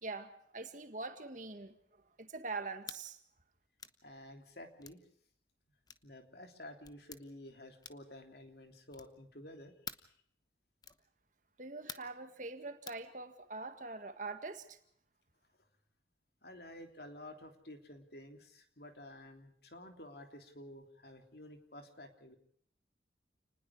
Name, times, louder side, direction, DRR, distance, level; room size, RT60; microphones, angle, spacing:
voice 1, 0.0-1.8 2.2-3.2 11.6-14.8, right 3 dB, 45° right, 1.9 m, -43 dB
sound 1, 2.8-3.0 3.8-4.0 4.8-5.0 5.9-6.1 6.8-7.2 7.8-8.1 8.9-9.2 9.8-10.1 10.8-11.0 11.9-12.2 12.9-13.0, left 6 dB, 20° left, 1.0 m, -48 dB
voice 2, 4.0-5.0 6.0-9.7 16.4-22.3, left 1 dB, 60° left, 3.3 m, -51 dB
29.0 x 20.0 x 4.9 m
head